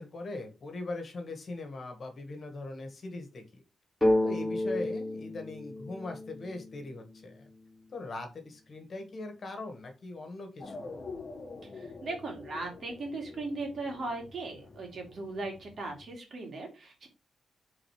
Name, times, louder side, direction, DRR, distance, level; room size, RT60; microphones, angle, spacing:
voice 1, 0.0-3.6 4.2-7.5 7.9-10.9, left 2 dB, 45° left, 5 dB, 1.7 m, -41 dB
sound 1, 4.0-7.7, left 1 dB, 10° left, 2.2 m, -31 dB
sound 2, 10.6-16.1, left 3 dB, 30° left, 1.8 m, -46 dB
voice 2, 11.7-17.1, right 2 dB, 50° right, 1 dB, 2.3 m, -38 dB
5.1 x 3.9 x 4.8 m, 0.30 s
wide cardioid pair, 120°, 0 cm